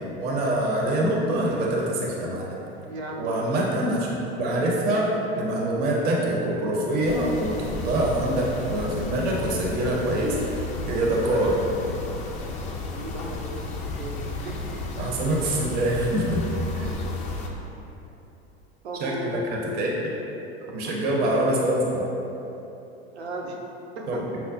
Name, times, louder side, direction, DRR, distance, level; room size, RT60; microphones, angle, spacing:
voice 1, 0.0-2.6 3.2-10.6 10.9-11.6 15.0-16.4 16.7-16.9 19.0-19.9 20.7-22.0 24.1-24.2, right 1 dB, 30° right, -2 dB, 0.5 m, -25 dB
voice 2, 2.8-3.4 12.9-13.5 13.8-14.2 14.4-14.7 16.8-17.0 18.8-19.3 20.6-21.0 23.1-23.6 24.0-24.2, right 2 dB, 80° right, -1 dB, 0.6 m, -36 dB
sound 1, 7.0-17.5, left 2 dB, 25° left, 0.3 m, -33 dB
5.6 x 2.0 x 2.5 m, 3.0 s
figure-of-eight pair, 85°, 32 cm